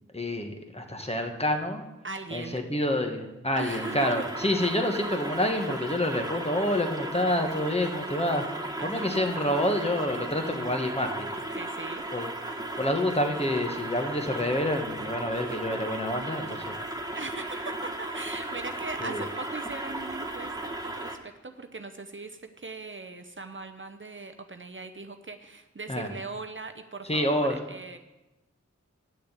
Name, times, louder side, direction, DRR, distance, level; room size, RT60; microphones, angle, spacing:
voice 1, 0.1-1.8 2.3-8.4 8.8-11.3 12.1-12.3 12.8-16.7 19.0-19.2 25.9-26.1 27.1-27.6, left 1 dB, 20° left, 4 dB, 1.3 m, -28 dB
voice 2, 2.0-2.6 3.6-4.2 5.3-5.4 8.8-9.1 11.5-12.1 17.1-28.0, right 3 dB, 45° right, 6 dB, 0.7 m, -39 dB
sound 1, 3.7-21.2, right 1 dB, 15° right, 1.2 m, -36 dB
8.9 x 6.7 x 8.1 m, 1.0 s
wide cardioid pair, 55°, 29 cm